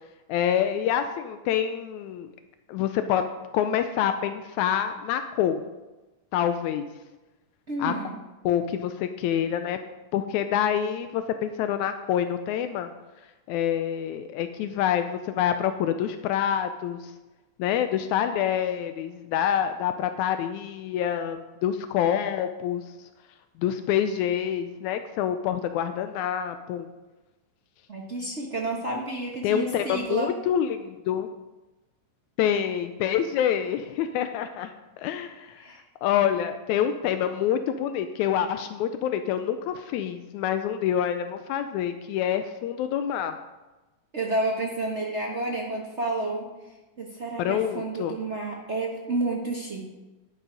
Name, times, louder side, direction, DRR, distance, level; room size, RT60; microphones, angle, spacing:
voice 1, 0.3-2.3 2.7-5.6 6.3-6.9 7.8-7.9 8.4-9.8 10.1-12.9 13.5-17.1 17.6-22.8 23.6-26.9 29.4-31.3 32.4-34.7 35.0-35.7 36.0-43.4 47.4-48.2, left 9 dB, 85° left, 9 dB, 2.0 m, -26 dB
voice 2, 7.7-8.2 27.9-30.3 35.6-35.8 44.1-46.5 47.0-49.9, right 2 dB, 50° right, -2 dB, 0.7 m, -30 dB
11.0 x 8.8 x 5.1 m, 1.1 s
omnidirectional pair, 3.4 m